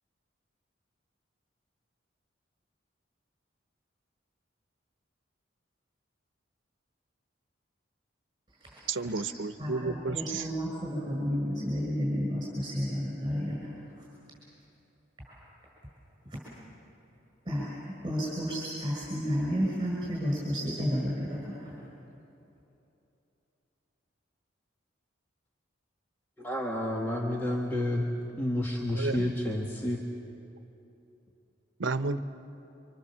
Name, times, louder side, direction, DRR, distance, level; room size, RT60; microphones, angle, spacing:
voice 1, 8.9-10.5 28.9-29.3 31.8-32.2, right 3 dB, 85° right, 0.9 m, -32 dB
voice 2, 9.6-13.7 15.3-15.4 17.5-21.7, equal, 20° right, 6.0 m, -31 dB
voice 3, 26.4-28.0 28.3-30.0, left 1 dB, 10° left, 1.6 m, -30 dB
29.0 x 25.5 x 7.4 m
head